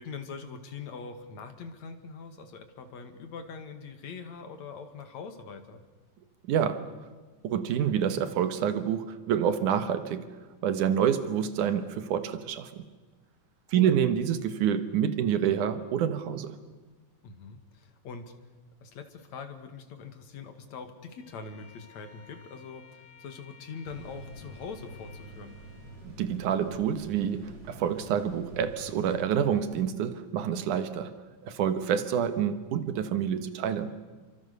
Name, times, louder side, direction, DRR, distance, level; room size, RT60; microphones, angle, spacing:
voice 1, 0.0-5.8 13.7-13.9 17.2-18.3 18.8-25.6, left 5 dB, 65° left, 3.3 m, -43 dB
voice 2, 6.5-6.9 7.4-10.4 10.6-12.8 13.7-16.6 26.0-31.1 31.4-33.9, right 8 dB, 90° right, 2.8 m, -27 dB
Bowed string instrument, 21.1-25.9, left 5 dB, 20° left, 6.7 m, -56 dB
sound 1, 23.8-29.9, right 1 dB, 25° right, 4.9 m, -47 dB
29.5 x 24.5 x 6.8 m
omnidirectional pair, 3.4 m